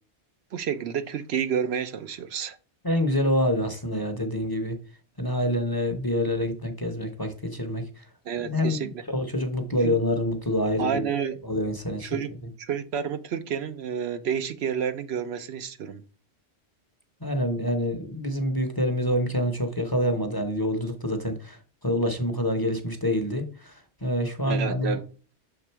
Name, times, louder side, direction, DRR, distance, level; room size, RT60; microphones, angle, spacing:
voice 1, 0.5-2.6 8.3-9.0 9.8-9.9 10.8-11.4 12.0-12.3 12.6-16.0 24.5-25.0, right 7 dB, 70° right, 0.9 m, -30 dB
voice 2, 2.8-4.8 5.2-7.8 8.4-11.1 11.4-12.2 17.2-21.6 21.8-23.7 24.0-25.0, equal, 25° left, 0.7 m, -26 dB
6.8 x 3.7 x 4.4 m
omnidirectional pair, 1.1 m